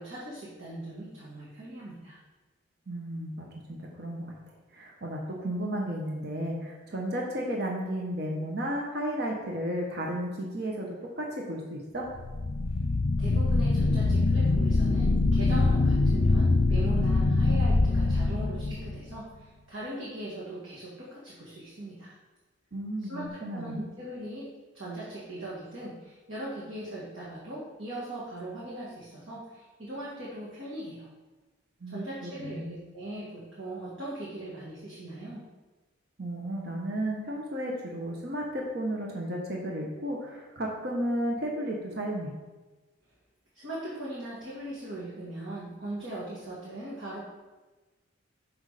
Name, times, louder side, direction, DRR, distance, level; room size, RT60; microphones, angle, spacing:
voice 1, 0.0-2.2 13.2-22.1 23.1-24.5 24.7-31.1 31.9-35.4 43.5-47.2, right 1 dB, 70° right, -8 dB, 2.1 m, -39 dB
voice 2, 2.9-4.3 4.7-12.1 22.7-23.8 31.8-32.7 36.2-42.3, right 1 dB, 50° right, -1 dB, 1.1 m, -33 dB
sound 1, 12.2-19.2, left 3 dB, 60° left, 0.5 m, -24 dB
6.3 x 6.2 x 5.0 m, 1.2 s
head